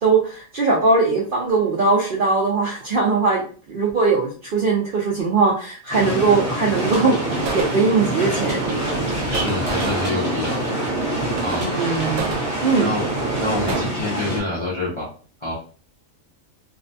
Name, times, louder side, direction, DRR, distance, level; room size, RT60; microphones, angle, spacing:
voice 1, 0.0-3.4 3.7-8.6 11.6-12.3 12.6-12.9, right 4 dB, 65° right, -3 dB, 0.5 m, -20 dB
sound 1, 5.9-14.4, equal, 30° left, 0.8 m, -27 dB
sound 2, 6.7-13.8, right 4 dB, 80° right, 1.0 m, -29 dB
sound 3, 6.9-13.2, right 1 dB, 25° right, 1.0 m, -40 dB
voice 2, 9.1-10.7 11.4-12.1 12.8-13.1 13.4-15.1 15.4-15.5, left 2 dB, 50° left, -6 dB, 0.3 m, -27 dB
2.6 x 2.1 x 2.6 m, 0.41 s
omnidirectional pair, 1.5 m